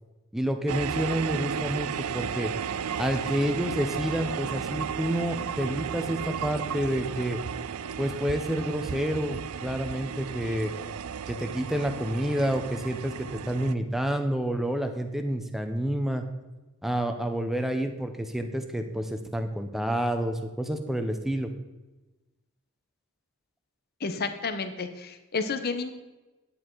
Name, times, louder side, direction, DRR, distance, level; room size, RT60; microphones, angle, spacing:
voice 1, 0.3-2.5 3.0-7.4 8.0-10.7 11.3-16.2 16.8-21.5, equal, ahead, 5 dB, 0.7 m, -29 dB
sound 1, 0.7-13.7, right 7 dB, 75° right, 0.4 m, -34 dB
voice 2, 24.0-25.9, left 4 dB, 45° left, 9 dB, 0.8 m, -31 dB
10.0 x 8.6 x 4.6 m, 1.1 s
head